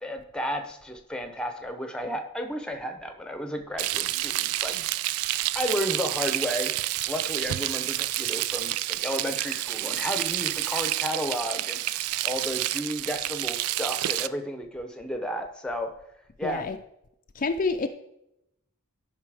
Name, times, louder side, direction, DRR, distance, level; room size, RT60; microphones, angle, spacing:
voice 1, 0.0-4.8 5.5-15.9 16.4-16.7, equal, 5° left, 5 dB, 0.7 m, -33 dB
Frying (food), 3.8-14.3, right 15 dB, 80° right, 0.3 m, -29 dB
voice 2, 16.4-16.8 17.4-17.9, left 4 dB, 40° left, 6 dB, 0.4 m, -27 dB
11.0 x 5.4 x 4.9 m, 0.84 s
head